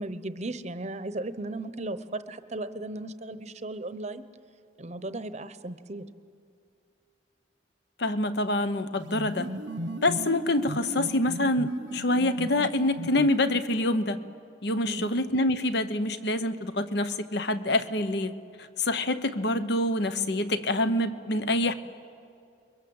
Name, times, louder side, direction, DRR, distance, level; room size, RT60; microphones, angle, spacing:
voice 1, 0.0-4.2 4.8-6.0 14.8-15.2, right 2 dB, 35° right, 12 dB, 0.9 m, -36 dB
voice 2, 8.0-9.5 10.0-14.2 14.6-18.3 18.6-21.7, left 1 dB, 60° left, 11 dB, 1.0 m, -26 dB
sound 1, 9.0-13.9, equal, 75° right, 1.0 m, -37 dB
29.0 x 22.5 x 7.9 m, 2.5 s
head